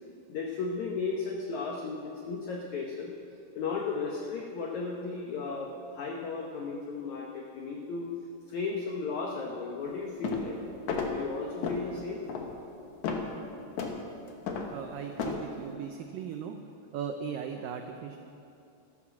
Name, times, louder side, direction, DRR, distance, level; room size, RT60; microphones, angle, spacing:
voice 1, 0.3-3.1 3.5-8.1 8.5-10.6 10.9-12.2 15.3-15.5, left 4 dB, 80° left, 0 dB, 1.6 m, -35 dB
sound 1, 10.2-10.5 10.9-11.2 11.6-11.9 12.3-12.5 13.0-13.3 13.8-14.0 14.5-14.7 15.2-15.4, left 5 dB, 65° left, 2.0 m, -32 dB
voice 2, 14.7-16.6 16.9-18.2, right 7 dB, 90° right, 5 dB, 1.9 m, -38 dB
13.0 x 13.0 x 6.1 m, 2.7 s
omnidirectional pair, 4.8 m